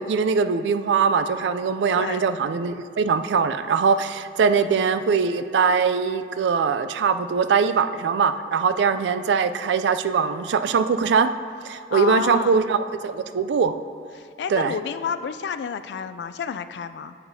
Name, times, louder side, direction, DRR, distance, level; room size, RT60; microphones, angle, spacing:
voice 1, 0.0-11.3 11.6-12.8 13.0-13.7 14.5-14.7, right 5 dB, 85° right, 11 dB, 0.3 m, -22 dB
voice 2, 2.0-2.3 11.7-12.7 14.2-17.2, left 6 dB, 75° left, 12 dB, 0.3 m, -30 dB
8.7 x 7.8 x 2.7 m, 2.3 s
head